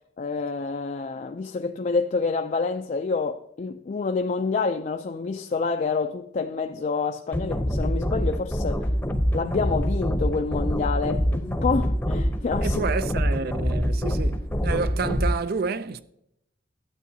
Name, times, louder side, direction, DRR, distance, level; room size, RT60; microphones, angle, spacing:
voice 1, 0.2-8.9 9.3-12.8 14.0-14.1, left 4 dB, 45° left, 0.4 m, -28 dB
sound 1, 7.3-15.3, equal, 10° left, 0.8 m, -25 dB
voice 2, 12.6-16.0, right 4 dB, 60° right, 0.4 m, -29 dB
12.0 x 8.1 x 2.7 m
head